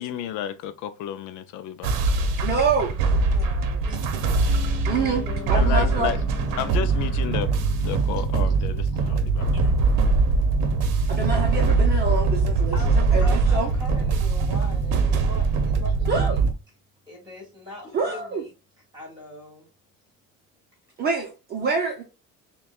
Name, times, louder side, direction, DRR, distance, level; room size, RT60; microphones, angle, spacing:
voice 1, 0.0-1.9 5.5-6.2 6.6-7.5 7.8-9.5, left 10 dB, 65° left, 0.5 m, -31 dB
sound 1, 1.8-16.5, right 3 dB, 75° right, 0.8 m, -22 dB
voice 2, 2.4-2.9 4.9-5.2 5.5-6.1 11.1-12.8 13.1-13.7 16.1-16.3 17.9-18.4 21.0-22.0, right 5 dB, 30° right, 0.6 m, -26 dB
voice 3, 3.1-4.2 6.1-6.2 8.1-8.6 9.5-9.7 12.7-16.5 17.1-18.5 18.9-19.7, equal, 15° right, 2.3 m, -41 dB
Piano, 4.5-14.5 14.8-14.9, left 4 dB, 15° left, 0.7 m, -42 dB
6.3 x 2.3 x 2.3 m
cardioid pair, 170°, 32 cm